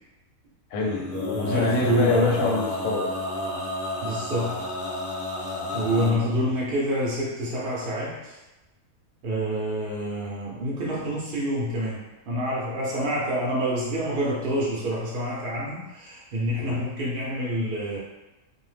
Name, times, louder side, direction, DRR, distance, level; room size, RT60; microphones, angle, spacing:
voice 1, 0.7-3.1 5.7-6.2 16.6-16.8, left 2 dB, 90° left, -1 dB, 1.1 m, -27 dB
Male singing, 0.8-6.1, left 2 dB, 65° left, 0.4 m, -31 dB
voice 2, 1.3-2.4 4.0-4.6 5.7-8.4 9.2-12.0 12.3-18.0, equal, 60° right, -5 dB, 0.5 m, -27 dB
2.6 x 2.0 x 3.1 m, 1.0 s
omnidirectional pair, 1.6 m